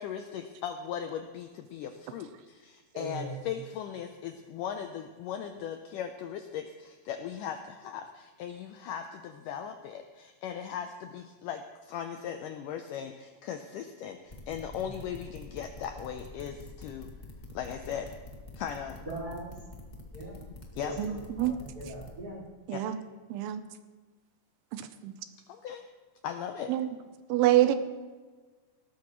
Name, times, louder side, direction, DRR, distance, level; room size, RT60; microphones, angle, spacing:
voice 1, 0.0-17.1 17.5-18.1 18.6-19.0 20.8-21.0 22.7-22.9 25.5-25.8 26.2-26.7, left 8 dB, 85° left, 6 dB, 1.9 m, -38 dB
voice 2, 2.9-3.4 14.8-14.9 19.1-19.5 20.1-20.3 20.8-22.4, right 1 dB, 25° right, -5 dB, 4.8 m, -40 dB
sound 1, 14.3-22.1, left 2 dB, 55° left, 0.4 m, -46 dB
voice 3, 21.0-21.5 22.7-23.0 23.3-23.6 24.7-25.1 26.7-26.9 27.3-27.8, right 13 dB, 85° right, 10 dB, 2.8 m, -26 dB
18.0 x 13.0 x 3.1 m, 1.4 s
omnidirectional pair, 4.5 m